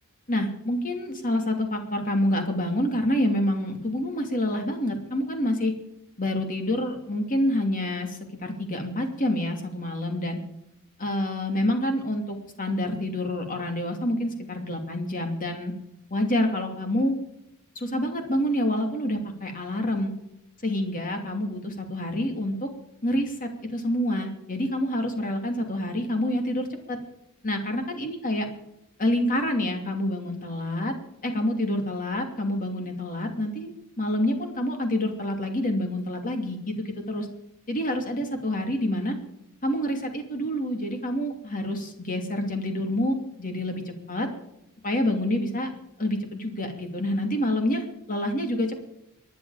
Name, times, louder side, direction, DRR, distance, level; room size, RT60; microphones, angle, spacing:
voice 1, 0.3-5.7 6.2-10.4 11.0-15.7 16.1-17.2 17.7-20.1 20.6-22.7 23.0-27.0 27.4-28.5 29.0-30.9 31.2-37.3 37.7-39.2 39.6-44.3 44.8-45.7 46.0-48.7, left 1 dB, 40° left, 4 dB, 2.8 m, -27 dB
25.0 x 10.0 x 5.0 m, 0.81 s
head